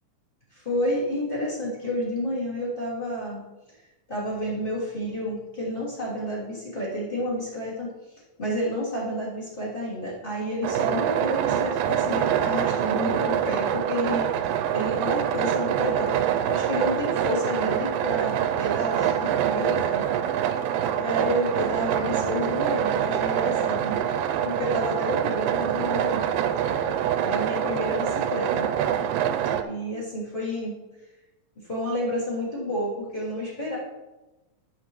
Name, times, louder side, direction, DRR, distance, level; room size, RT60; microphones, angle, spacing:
voice 1, 0.5-3.4 4.1-7.9 8.4-14.3 14.7-20.1 21.0-24.0 24.4-26.2 27.2-28.7 29.6-30.7 31.6-33.8, equal, 15° left, -7 dB, 2.7 m, -30 dB
sound 1, 10.6-29.6, right 9 dB, 85° right, 2.2 m, -25 dB
10.5 x 8.1 x 3.1 m, 1.1 s
omnidirectional pair, 3.9 m